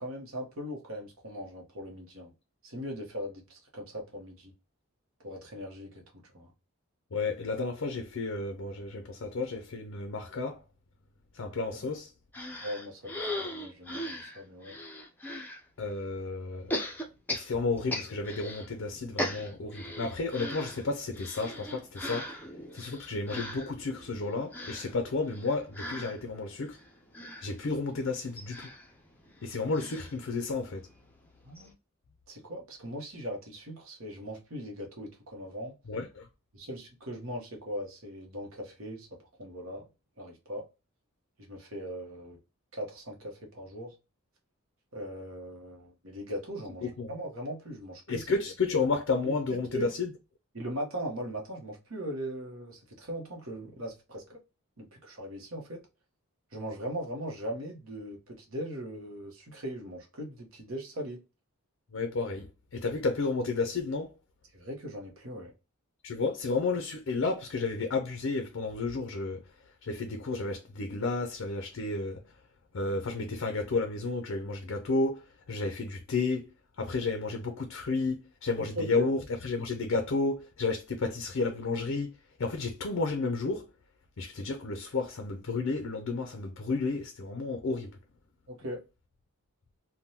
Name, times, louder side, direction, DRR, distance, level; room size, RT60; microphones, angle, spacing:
voice 1, 0.0-2.3 2.6-4.5 5.2-6.0 6.3-6.5 12.6-14.8 31.4-31.7 32.3-35.7 36.5-39.1 39.4-39.9 40.2-40.7 41.5-42.4 42.7-43.9 44.9-48.3 49.2-49.3 49.7-49.8 50.5-54.4 54.8-55.8 56.5-61.2 64.5-65.5 78.8-79.1 88.5-88.8, equal, 65° right, 1.1 m, -39 dB
voice 2, 7.1-10.6 11.3-12.1 15.8-16.7 17.3-22.4 22.7-26.8 27.4-28.7 29.4-30.9 35.9-36.3 46.8-47.1 48.1-50.1 61.9-64.1 66.0-69.5 69.8-72.3 72.7-83.7 84.2-88.0, left 3 dB, 60° left, 0.5 m, -32 dB
sound 1, 12.3-15.6 16.7-18.7 19.0-30.9 31.3-31.4 31.6-31.7, left 1 dB, 10° left, 0.5 m, -39 dB
3.5 x 2.2 x 2.8 m
head